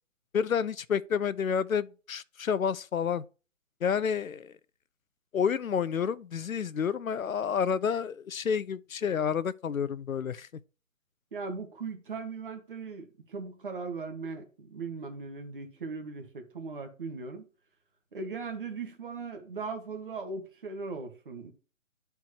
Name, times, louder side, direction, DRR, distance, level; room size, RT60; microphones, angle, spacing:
voice 1, 0.3-3.2 3.8-4.5 5.3-10.5, left 7 dB, 85° left, 0.6 m, -29 dB
voice 2, 11.3-17.4 18.1-21.5, right 4 dB, 40° right, 1.2 m, -38 dB
11.5 x 4.5 x 2.8 m
figure-of-eight pair, 150°, 40 cm